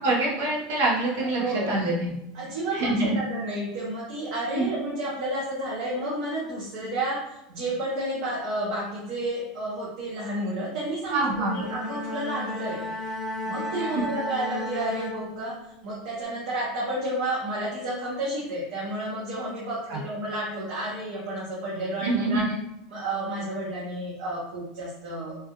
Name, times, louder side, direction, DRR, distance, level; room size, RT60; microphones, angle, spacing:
voice 1, 0.0-2.1 2.7-3.2 4.5-4.7 11.1-11.6 13.7-14.0 19.9-20.0 22.0-22.5, right 2 dB, 75° right, -4 dB, 1.1 m, -25 dB
voice 2, 1.3-1.8 2.3-12.9 13.4-22.4 22.9-25.4, right 1 dB, 55° right, -7 dB, 0.9 m, -31 dB
Bowed string instrument, 11.2-15.8, left 1 dB, 5° left, 0.7 m, -34 dB
3.2 x 2.3 x 3.0 m, 0.85 s
supercardioid pair, 175°, 0 cm